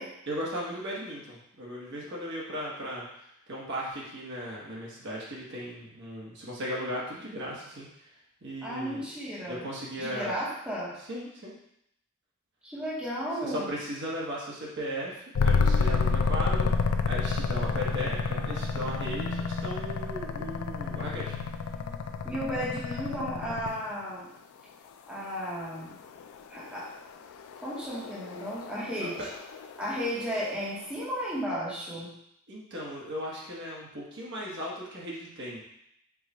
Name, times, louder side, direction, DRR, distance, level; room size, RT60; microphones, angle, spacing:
voice 1, 0.3-3.0 3.5-8.1 8.4-9.0 9.4-10.3 11.1-11.5 13.4-16.7 17.1-21.3 29.0-29.3 32.5-35.6, equal, 60° right, -4 dB, 1.2 m, -36 dB
voice 2, 8.6-9.6 10.0-10.9 12.6-13.7 22.2-24.3 25.1-26.0 26.5-26.9 27.6-29.2 29.8-32.1, equal, 5° right, -7 dB, 0.9 m, -34 dB
sound 1, 15.3-23.9 26.2-30.7, left 4 dB, 75° left, 0.3 m, -30 dB
4.7 x 2.3 x 4.1 m, 0.77 s
head